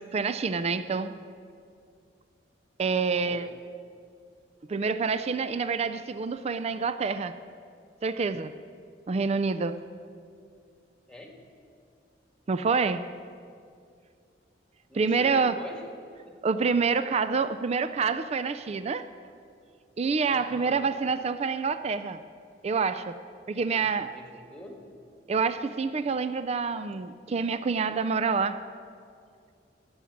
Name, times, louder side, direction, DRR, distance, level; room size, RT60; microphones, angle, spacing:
voice 1, 0.1-1.2 2.8-3.5 4.7-7.3 8.0-8.5 9.1-9.8 12.5-13.0 14.9-15.5 16.4-19.1 20.0-22.2 22.6-23.2 23.5-24.1 25.3-28.6, right 5 dB, 35° right, 12 dB, 0.4 m, -27 dB
voice 2, 14.9-15.8 16.3-16.4 20.2-20.9 23.5-23.9 24.1-24.9, left 1 dB, 5° left, 2 dB, 1.6 m, -45 dB
15.0 x 7.1 x 9.4 m, 2.4 s
head